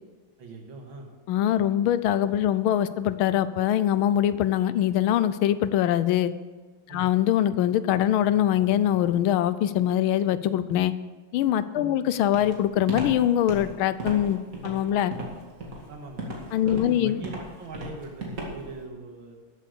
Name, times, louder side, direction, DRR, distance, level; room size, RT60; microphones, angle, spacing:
voice 1, 0.4-1.1 6.9-7.1 11.7-12.0 15.9-16.4 16.6-19.4, right 3 dB, 70° right, 3 dB, 2.4 m, -41 dB
voice 2, 1.3-6.3 6.9-10.9 11.3-15.1 16.5-17.2, left 11 dB, 90° left, 14 dB, 1.5 m, -23 dB
Walk footsteps, 12.3-18.8, right 1 dB, 45° right, 2.6 m, -36 dB
13.5 x 7.9 x 6.7 m, 1.4 s
omnidirectional pair, 2.2 m